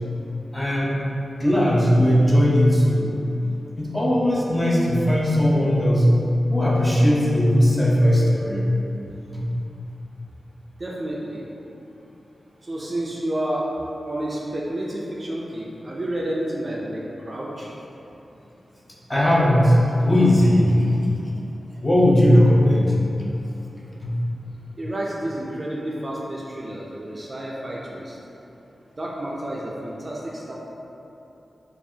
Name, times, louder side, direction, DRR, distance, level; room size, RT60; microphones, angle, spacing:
voice 1, 0.5-1.0 1.3-3.1 3.8-6.1 6.5-8.7 9.3-9.5 19.1-21.0 21.8-22.9 24.0-24.2, equal, 15° left, -5 dB, 0.6 m, -18 dB
voice 2, 10.8-11.5 12.6-13.7 14.0-17.7 24.8-28.2 29.0-30.6, right 1 dB, 30° right, -4 dB, 0.4 m, -30 dB
4.7 x 2.4 x 2.7 m, 3.0 s
wide cardioid pair, 120°, 0 cm